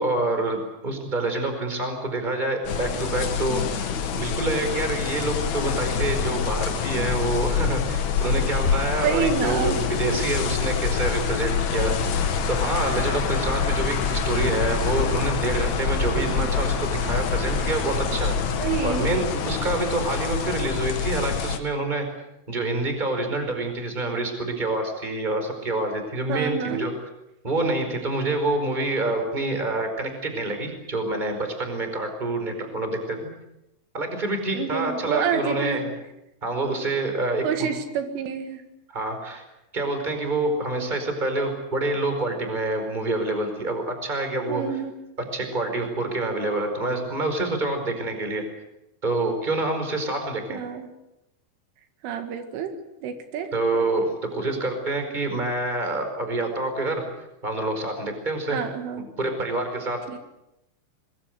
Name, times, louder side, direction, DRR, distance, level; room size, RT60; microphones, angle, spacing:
voice 1, 0.0-11.9 12.5-18.3 18.8-22.0 22.5-26.9 27.4-33.3 33.9-35.9 36.4-37.7 38.9-39.4 39.7-44.8 45.3-48.4 49.0-50.6 53.5-57.0 57.4-58.6 59.0-60.0, right 2 dB, 10° right, 6 dB, 4.4 m, -27 dB
sound 1, 2.6-21.6, left 7 dB, 65° left, 1.8 m, -26 dB
voice 2, 9.0-9.8 18.6-19.1 26.3-26.9 34.5-35.8 37.4-38.6 44.5-44.9 50.5-50.9 52.0-53.5 58.5-59.0 60.1-60.2, right 7 dB, 80° right, 7 dB, 4.4 m, -28 dB
sound 2, 11.7-18.9, left 3 dB, 45° left, 1.4 m, -30 dB
24.0 x 22.0 x 8.1 m, 0.90 s
omnidirectional pair, 5.6 m